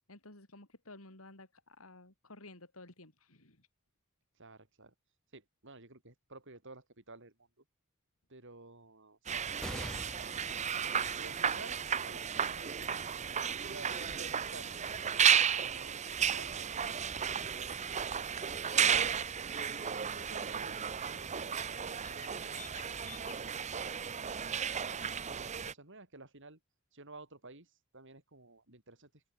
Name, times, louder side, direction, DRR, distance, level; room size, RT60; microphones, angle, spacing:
voice 1, 0.0-3.7, left 2 dB, 85° left, 4.7 m, -54 dB
voice 2, 4.3-4.9 5.3-7.5 8.3-10.8 11.2-13.0 13.5-14.7 15.1-17.7 19.5-22.6 23.1-23.7 24.7-26.6 26.9-29.2, right 2 dB, 60° right, 7.5 m, -54 dB
sound 1, 9.3-25.7, right 7 dB, 35° right, 0.8 m, -33 dB
sound 2, 9.6-16.5 17.1-17.2 18.3-18.9, equal, 5° left, 5.9 m, -51 dB
sound 3, 18.6-24.9, left 6 dB, 35° left, 3.8 m, -57 dB
open air
head